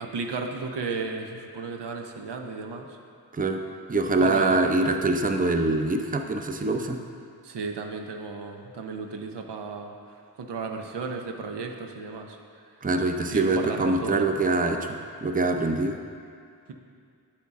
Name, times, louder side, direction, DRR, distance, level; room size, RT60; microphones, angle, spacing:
voice 1, 0.0-2.9 4.2-5.0 7.4-9.9 10.4-12.4 13.3-14.3, right 4 dB, 90° right, 3 dB, 0.7 m, -34 dB
voice 2, 3.9-7.0 12.8-16.0, right 2 dB, 20° right, 5 dB, 0.6 m, -24 dB
8.0 x 7.4 x 3.6 m, 2.3 s
cardioid pair, 55°, 40 cm